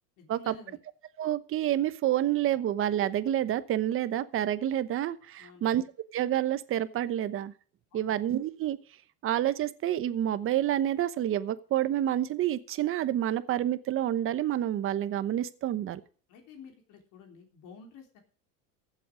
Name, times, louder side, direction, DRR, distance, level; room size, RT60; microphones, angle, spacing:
voice 1, 0.2-0.8 5.4-5.7 7.9-8.2 16.3-18.2, left 5 dB, 55° left, 3 dB, 3.5 m, -51 dB
voice 2, 1.2-5.8 6.1-7.5 7.9-8.8 9.2-16.0, right 12 dB, 35° right, 14 dB, 1.0 m, -28 dB
15.0 x 7.8 x 5.1 m, 0.42 s
supercardioid pair, 135°, 37 cm